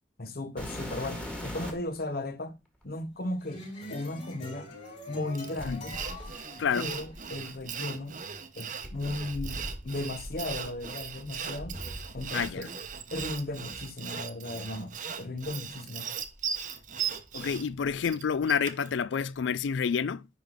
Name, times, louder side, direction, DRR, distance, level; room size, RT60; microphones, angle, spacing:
voice 1, 0.2-2.6 2.8-4.7 5.1-6.0 6.7-8.2 8.6-11.8 12.1-12.7 13.1-16.1, left 2 dB, 55° left, 1.0 m, -36 dB
sound 1, 0.6-2.0 2.8-2.9 5.6-7.7 8.8-12.6 12.8-13.9 14.7-14.8 15.4-15.5 16.2-17.3 17.5-18.1 19.4-19.5, equal, 5° left, 1.6 m, -42 dB
sound 2, 3.2-7.5, left 2 dB, 40° left, 4.5 m, -45 dB
Sawing, 5.4-18.9, right 7 dB, 45° right, 0.9 m, -38 dB
voice 2, 6.6-6.9 12.3-12.7 17.3-20.3, left 6 dB, 85° left, 0.4 m, -29 dB
10.5 x 3.8 x 3.5 m
head